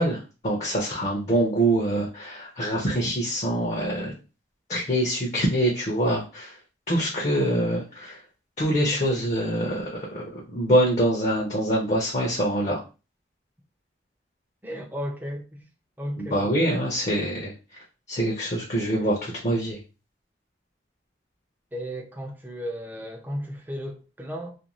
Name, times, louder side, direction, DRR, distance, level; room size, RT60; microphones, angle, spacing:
voice 1, 0.0-4.1 4.7-6.5 6.9-8.2 8.6-12.8 16.2-17.5 18.1-19.8, right 1 dB, 40° left, 0.6 m, -25 dB
voice 2, 14.6-15.7 16.0-16.8 21.7-24.6, equal, 10° right, 0.5 m, -34 dB
2.5 x 2.2 x 2.9 m
head